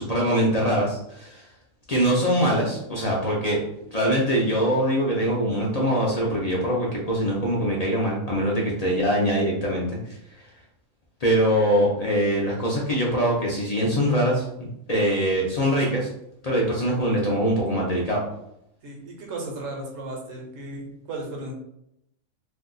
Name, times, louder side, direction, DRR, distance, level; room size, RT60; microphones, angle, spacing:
voice 1, 0.0-1.4 1.9-3.6 3.9-9.9 11.2-16.1 16.4-18.2, equal, 45° left, -3 dB, 0.5 m, -23 dB
voice 2, 18.8-21.5, right 2 dB, 75° right, 0 dB, 1.1 m, -35 dB
2.6 x 2.3 x 3.8 m, 0.79 s
omnidirectional pair, 1.4 m